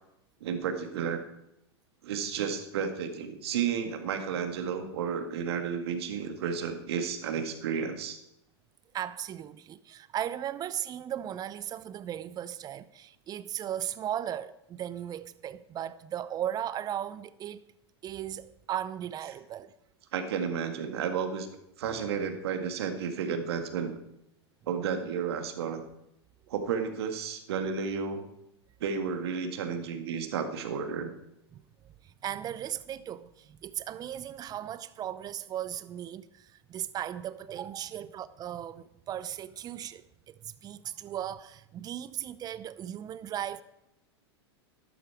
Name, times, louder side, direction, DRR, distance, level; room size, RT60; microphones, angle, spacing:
voice 1, 0.4-1.2 2.0-8.2 20.1-21.5 21.8-23.9 24.7-25.8 26.5-28.3 28.8-31.1, right 6 dB, 65° right, 1.9 m, -32 dB
voice 2, 8.9-17.6 18.0-19.7 31.5-31.6 32.0-43.6, right 10 dB, 25° right, 0.7 m, -37 dB
13.0 x 12.5 x 4.6 m
hypercardioid pair, 95°, 14 cm